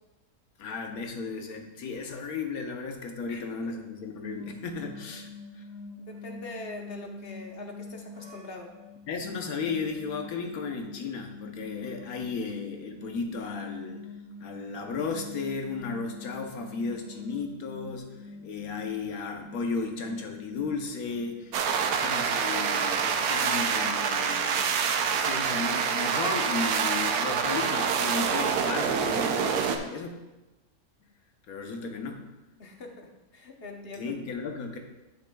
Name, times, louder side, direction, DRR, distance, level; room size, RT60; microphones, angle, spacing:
voice 1, 0.6-5.3 5.5-5.6 9.1-14.1 14.4-24.7 25.1-30.1 31.5-32.2 34.0-34.8, left 4 dB, 75° left, 4 dB, 1.4 m, -34 dB
voice 2, 3.3-3.7 6.0-8.7 32.6-34.1, left 2 dB, 45° left, 2 dB, 1.1 m, -43 dB
sound 1, 4.3-21.9, left 3 dB, 15° right, 2.1 m, -45 dB
sound 2, 21.5-29.8, right 6 dB, 90° right, 1.1 m, -26 dB
12.0 x 6.3 x 2.3 m, 1.1 s
omnidirectional pair, 1.5 m